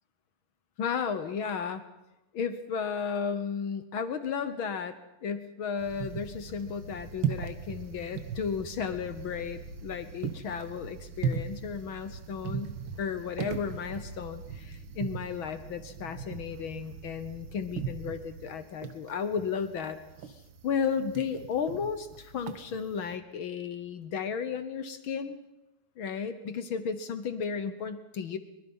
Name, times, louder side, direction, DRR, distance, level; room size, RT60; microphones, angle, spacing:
voice 1, 0.8-1.8 2.3-5.0 5.2-20.0 20.2-25.4 26.0-28.4, left 6 dB, 65° left, 11 dB, 1.3 m, -34 dB
sound 1, 5.8-23.2, right 7 dB, 55° right, 1.6 m, -39 dB
23.5 x 23.0 x 5.5 m, 0.94 s
omnidirectional pair, 3.4 m